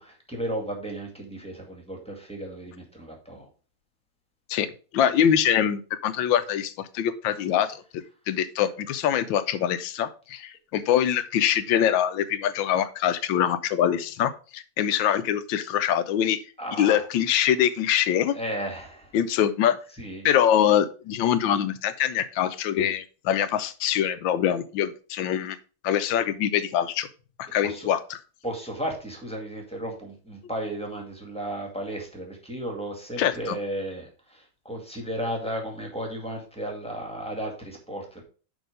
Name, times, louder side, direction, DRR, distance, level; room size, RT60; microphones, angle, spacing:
voice 1, 0.0-3.5 16.6-17.1 18.3-19.2 20.0-20.3 27.6-27.9 28.4-38.2, right 1 dB, 5° left, 0 dB, 1.9 m, -34 dB
voice 2, 4.9-16.4 16.8-18.4 19.1-19.8 20.2-25.6 25.8-27.1 27.4-28.2 33.2-33.6, left 10 dB, 75° left, 12 dB, 1.3 m, -24 dB
6.3 x 5.4 x 5.1 m, 0.37 s
omnidirectional pair, 2.2 m